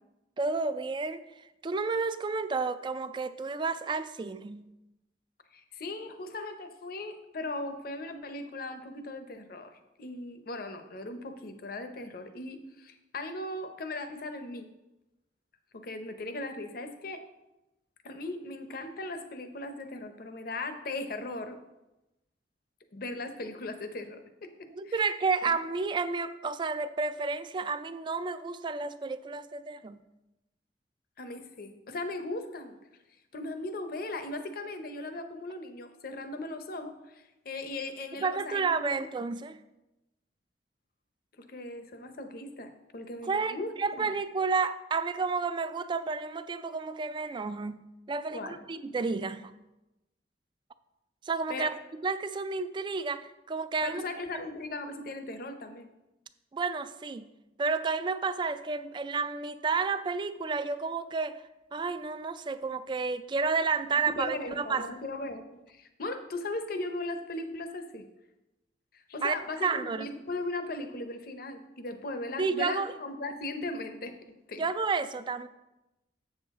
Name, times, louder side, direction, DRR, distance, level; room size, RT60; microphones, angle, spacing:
voice 1, 0.4-1.2 1.6-4.6 24.8-30.0 38.2-39.6 43.2-49.5 51.3-54.0 56.5-57.3 57.6-61.4 61.7-64.9 69.2-69.3 69.6-70.1 72.4-72.9 74.6-75.5, right 4 dB, 25° right, 13 dB, 0.3 m, -31 dB
voice 2, 5.5-14.7 15.8-17.2 18.0-21.6 22.9-25.1 25.4-25.5 31.2-32.8 33.3-39.1 41.5-44.1 48.3-48.7 51.5-51.7 53.8-55.9 64.0-68.1 68.9-74.1 74.5-74.6, left 2 dB, 55° left, 8 dB, 0.7 m, -38 dB
7.7 x 6.4 x 3.6 m, 0.97 s
head